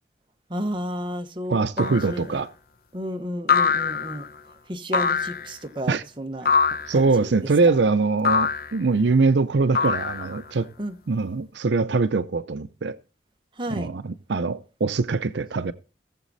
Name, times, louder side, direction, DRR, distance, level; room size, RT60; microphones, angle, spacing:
voice 1, 0.5-2.4 2.9-4.3 4.7-6.6 6.9-7.5 10.8-11.0 13.5-13.9, equal, 25° right, 1.1 m, -32 dB
voice 2, 1.5-2.5 5.9-6.0 6.9-10.7 11.1-13.0 13.7-15.7, right 3 dB, 75° right, 0.6 m, -23 dB
sound 1, 1.8-2.2 3.5-4.3 4.9-5.5 6.4-7.0 8.2-8.8 9.7-10.5, left 6 dB, 50° left, 0.9 m, -23 dB
17.5 x 7.4 x 4.1 m
head